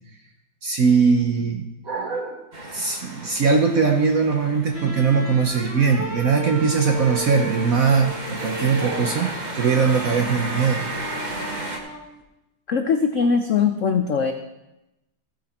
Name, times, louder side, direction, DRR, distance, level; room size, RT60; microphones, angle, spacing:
voice 1, 0.6-10.8, right 5 dB, 55° right, 4 dB, 1.1 m, -21 dB
sound 1, 2.5-11.8, right 2 dB, 25° right, 1.3 m, -35 dB
sound 2, 4.7-12.2, right 2 dB, 10° right, 1.4 m, -34 dB
voice 2, 12.7-14.3, left 6 dB, 90° left, 7 dB, 0.6 m, -21 dB
15.0 x 7.9 x 4.3 m, 0.96 s
omnidirectional pair, 2.2 m